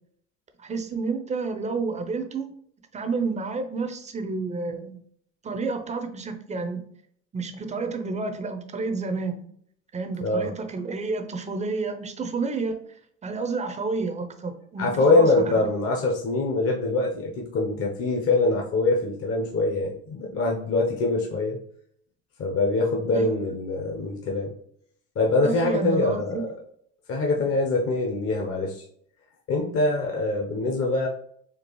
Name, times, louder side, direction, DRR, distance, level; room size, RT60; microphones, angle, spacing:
voice 1, 0.6-2.5 2.9-5.0 5.4-6.9 7.3-9.5 9.9-12.8 13.2-15.6 23.1-23.3 25.4-26.4, right 4 dB, 20° right, 7 dB, 0.5 m, -30 dB
voice 2, 10.2-10.5 14.8-21.6 22.4-24.5 25.2-26.5 27.1-28.8 29.5-31.1, left 2 dB, 35° left, -1 dB, 0.8 m, -24 dB
4.4 x 2.4 x 3.0 m, 0.65 s
hypercardioid pair, 80°, 39 cm